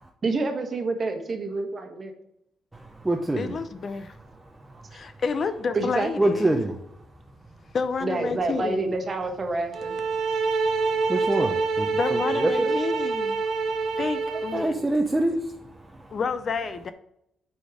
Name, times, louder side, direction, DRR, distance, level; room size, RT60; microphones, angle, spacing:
voice 1, 0.2-2.1 5.7-6.1 8.0-10.0, right 3 dB, 35° right, 5 dB, 1.2 m, -28 dB
voice 2, 2.7-3.6 6.2-6.7 11.1-12.8 14.5-15.4, right 1 dB, 10° right, 1 dB, 0.6 m, -25 dB
voice 3, 3.4-4.2 4.9-6.5 7.7-8.8 12.0-13.4 14.0-14.8 16.1-16.9, left 5 dB, 45° left, 11 dB, 0.5 m, -29 dB
sound 1, 9.7-14.7, right 4 dB, 70° right, 1.4 m, -26 dB
8.2 x 4.3 x 4.9 m, 0.78 s
cardioid pair, 110°, 0 cm